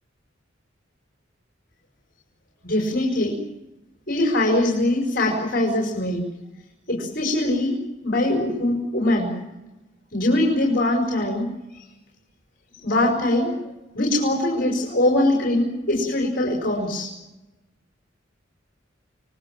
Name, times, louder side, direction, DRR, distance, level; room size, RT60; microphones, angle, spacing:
voice 1, 2.6-3.3 4.1-6.2 6.9-7.7 8.0-9.3 10.1-11.5 11.7-11.8 12.8-13.5 13.9-17.1, left 1 dB, 50° left, 0 dB, 5.6 m, -22 dB
29.5 x 20.5 x 7.6 m, 1.0 s
head